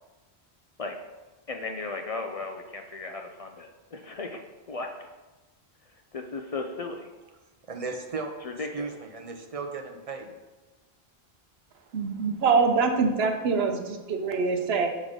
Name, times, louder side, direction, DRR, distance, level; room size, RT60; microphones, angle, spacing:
voice 1, 1.5-4.4 4.7-4.9 6.1-7.1 8.4-8.7, left 3 dB, 55° left, 4 dB, 0.4 m, -35 dB
voice 2, 7.7-10.3, right 4 dB, 40° right, 4 dB, 0.6 m, -36 dB
voice 3, 11.9-14.9, right 4 dB, 75° right, 5 dB, 0.9 m, -24 dB
6.1 x 3.7 x 5.0 m, 1.2 s
omnidirectional pair, 1.1 m